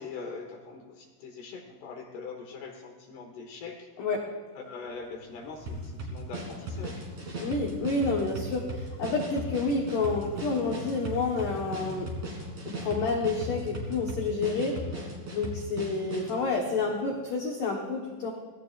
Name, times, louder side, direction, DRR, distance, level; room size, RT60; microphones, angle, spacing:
voice 1, 0.0-3.9 4.6-7.0, left 4 dB, 70° left, 2 dB, 2.7 m, -42 dB
Motorcycle, 4.7-17.3, left 1 dB, 65° right, 6.9 m, -48 dB
sound 1, 5.7-16.4, equal, 40° right, 3.8 m, -37 dB
voice 2, 7.4-12.1 12.7-18.3, left 3 dB, 90° left, -1 dB, 1.8 m, -29 dB
25.5 x 18.0 x 2.5 m, 1.5 s
omnidirectional pair, 6.0 m